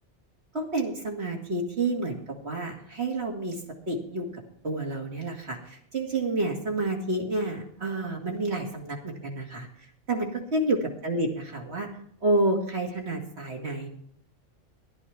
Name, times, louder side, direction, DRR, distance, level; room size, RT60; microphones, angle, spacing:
voice 1, 0.5-3.6 3.9-4.3 4.6-9.7 10.1-11.9 12.2-13.9, right 2 dB, 65° right, 0 dB, 2.5 m, -29 dB
12.5 x 11.5 x 4.8 m, 0.66 s
omnidirectional pair, 1.2 m